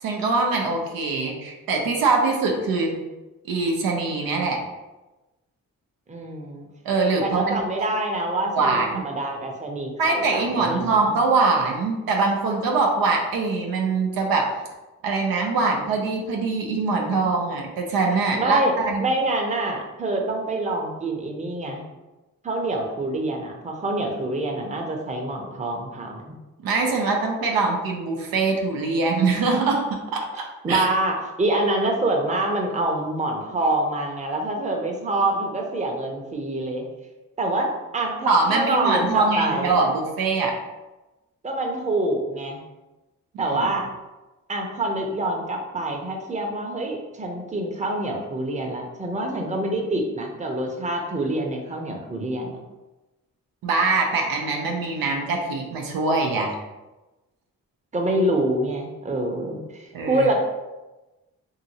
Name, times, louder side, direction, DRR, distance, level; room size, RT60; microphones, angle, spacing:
voice 1, 0.0-3.0 3.5-4.6 6.8-7.6 8.6-9.0 10.0-14.5 15.0-19.0 26.6-30.4 30.7-30.8 38.2-40.5 43.3-43.6 53.6-56.5 59.9-60.3, right 3 dB, 80° right, 1 dB, 0.6 m, -23 dB
voice 2, 6.1-6.7 7.2-11.0 18.4-18.7 19.0-21.8 22.4-26.4 30.6-36.8 37.4-37.7 37.9-39.8 41.4-42.6 43.4-43.8 44.5-52.6 57.9-60.3, right 1 dB, 20° right, 1 dB, 0.7 m, -26 dB
2.8 x 2.7 x 2.7 m, 1.1 s
supercardioid pair, 55°, 35 cm